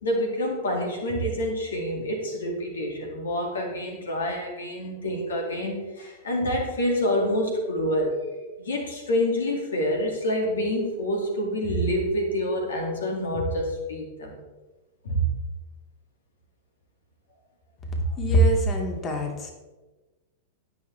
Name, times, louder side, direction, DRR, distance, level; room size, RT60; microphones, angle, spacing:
voice 1, 0.0-8.2 8.6-14.4 15.0-15.4, equal, 85° left, 1 dB, 2.3 m, -27 dB
voice 2, 18.2-19.5, right 1 dB, 30° left, 2 dB, 2.3 m, -22 dB
18.0 x 6.3 x 3.4 m, 1.2 s
hypercardioid pair, 110°, 0 cm